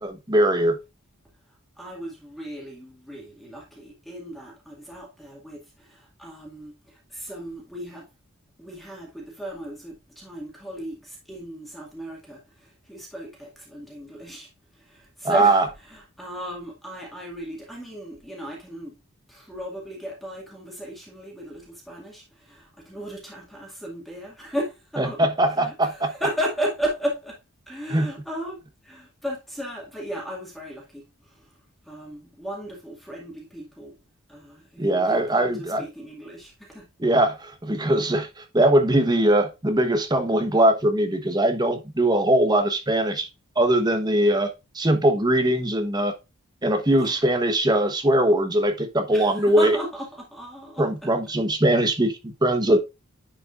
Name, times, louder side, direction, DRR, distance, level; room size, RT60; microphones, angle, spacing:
voice 1, 0.0-0.8 15.2-15.6 25.0-26.1 27.9-28.1 34.8-35.8 37.0-43.3 43.6-44.5 44.7-46.1 46.6-49.8 50.8-52.8, right 1 dB, 20° right, 1.0 m, -21 dB
voice 2, 1.8-8.1 8.6-14.5 14.8-18.9 19.3-25.2 25.6-27.4 27.7-31.4 31.9-34.0 34.3-36.9 47.0-47.2 49.1-50.9, equal, ahead, 2.0 m, -35 dB
10.0 x 4.9 x 2.5 m
head